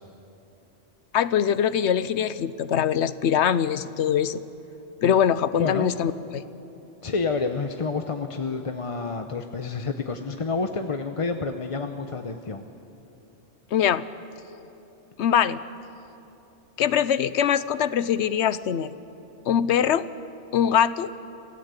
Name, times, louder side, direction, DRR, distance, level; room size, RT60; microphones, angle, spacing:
voice 1, 1.1-4.4 5.0-6.4 13.7-14.0 15.2-15.6 16.8-18.9 19.5-20.1 20.5-21.1, left 9 dB, 75° left, 15 dB, 1.0 m, -22 dB
voice 2, 5.5-5.9 7.0-12.6, left 4 dB, 30° left, 6 dB, 0.8 m, -29 dB
26.5 x 17.0 x 8.2 m, 2.9 s
omnidirectional pair, 1.2 m